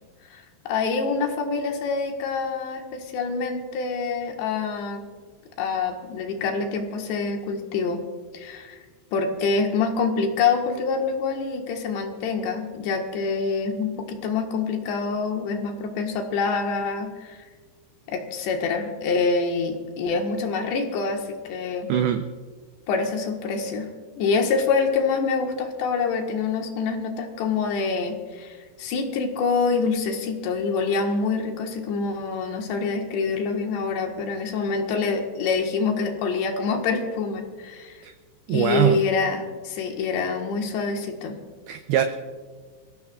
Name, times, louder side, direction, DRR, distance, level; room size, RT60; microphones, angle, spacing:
voice 1, 0.3-5.0 5.6-8.0 8.3-8.8 9.1-17.4 18.1-21.9 22.9-23.9 24.2-38.0 38.5-41.4, left 4 dB, 75° left, 2 dB, 3.5 m, -26 dB
voice 2, 21.9-22.2 38.0-38.1 38.5-39.0 41.7-42.0, right 11 dB, 90° right, 8 dB, 2.1 m, -22 dB
28.0 x 15.0 x 2.4 m, 1.5 s
omnidirectional pair, 5.2 m